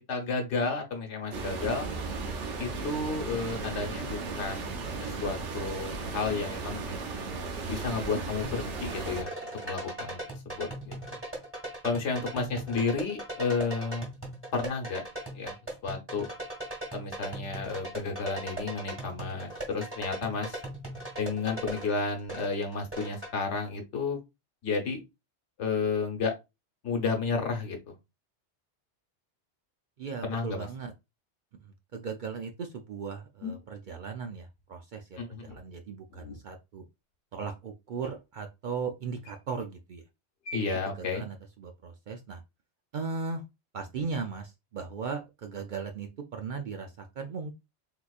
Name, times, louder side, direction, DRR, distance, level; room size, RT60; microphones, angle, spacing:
voice 1, 0.1-1.9 2.6-7.0 7.7-9.3 9.6-10.2 10.4-11.2 11.8-14.0 14.5-15.0 15.3-15.5 15.8-16.3 16.9-20.6 21.2-24.2 24.6-25.0 25.6-26.3 26.8-27.9 30.2-30.7 35.2-35.5 40.5-41.3, left 4 dB, 80° left, 3 dB, 1.2 m, -32 dB
sound 1, 1.3-9.2, right 4 dB, 85° right, 1.1 m, -36 dB
sound 2, 8.4-23.3, right 1 dB, 10° right, 1.5 m, -39 dB
voice 2, 30.0-30.9 31.6-36.8 37.3-40.0 40.7-42.4 42.9-43.4 43.7-47.5, right 5 dB, 60° right, 4 dB, 0.5 m, -37 dB
sound 3, 33.4-34.7 35.5-36.5 38.0-38.2 39.2-39.6 40.4-40.8, left 3 dB, 60° left, 1.0 m, -43 dB
3.8 x 2.9 x 2.3 m, 0.23 s
omnidirectional pair, 1.2 m